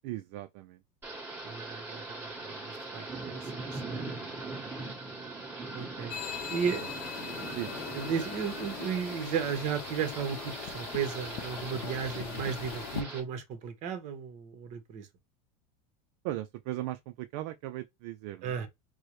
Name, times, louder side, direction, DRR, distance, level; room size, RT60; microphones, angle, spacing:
voice 1, 0.0-0.8 6.0-6.1 6.8-6.9 7.2-7.8 16.2-18.6, right 15 dB, 55° right, 0.4 m, -38 dB
Thunder / Rain, 1.0-13.2, right 3 dB, 10° right, 1.4 m, -41 dB
voice 2, 1.4-4.0 5.7-6.1 6.5-6.9 7.9-15.1 18.4-18.7, right 7 dB, 40° right, 1.0 m, -35 dB
sound 1, 6.1-13.0, left 10 dB, 50° left, 0.6 m, -41 dB
4.4 x 2.1 x 3.1 m
supercardioid pair, 150°, 19 cm